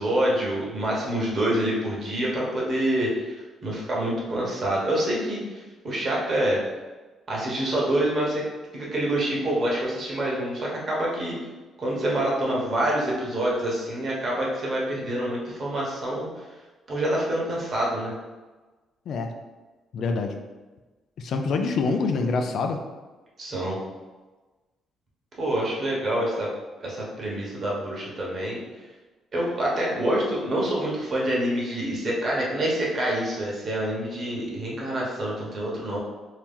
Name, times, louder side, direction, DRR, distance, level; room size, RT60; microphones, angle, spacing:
voice 1, 0.0-3.3 3.6-6.6 7.3-8.4 8.7-11.4 11.8-16.3 16.9-18.1 23.4-23.8 25.4-26.5 26.8-28.6 29.3-36.0, right 1 dB, 45° right, -4 dB, 1.2 m, -26 dB
voice 2, 19.1-19.4 19.9-20.4 21.2-22.8, left 4 dB, 70° left, 5 dB, 0.4 m, -26 dB
3.0 x 2.8 x 3.7 m, 1.2 s
cardioid pair, 90°, 0 cm